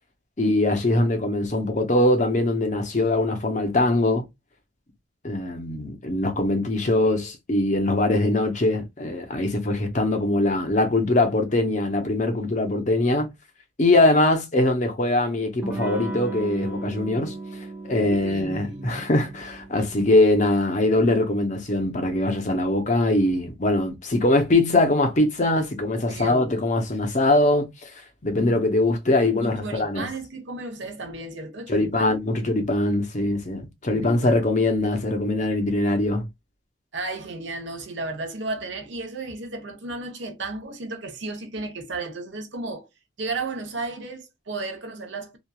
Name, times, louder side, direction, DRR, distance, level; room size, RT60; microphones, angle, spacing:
voice 1, 0.4-4.3 5.2-13.3 13.8-17.3 17.9-27.9 28.2-30.1 31.7-36.3, left 2 dB, 35° left, 0.6 m, -22 dB
Electric guitar / Strum, 15.6-21.0, right 3 dB, 10° right, 0.4 m, -36 dB
voice 2, 18.0-19.1 26.0-26.5 29.4-32.2 33.9-34.4 36.9-42.9 43.2-45.4, right 2 dB, 60° right, 0.8 m, -34 dB
2.9 x 2.4 x 2.2 m
head